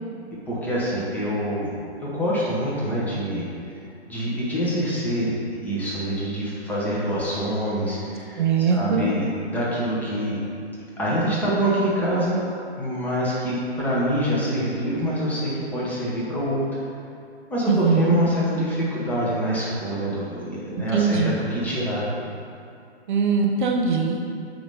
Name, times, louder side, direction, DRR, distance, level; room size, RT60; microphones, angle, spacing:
voice 1, 0.5-1.7 2.0-3.5 4.1-8.4 8.7-10.4 11.0-12.4 12.7-16.7 17.5-22.1, equal, 5° left, -8 dB, 1.1 m, -25 dB
voice 2, 8.4-9.1 17.7-18.2 20.9-21.4 23.1-24.2, right 5 dB, 45° right, 1 dB, 0.8 m, -21 dB
8.9 x 3.0 x 5.3 m, 2.5 s
hypercardioid pair, 140°, 34 cm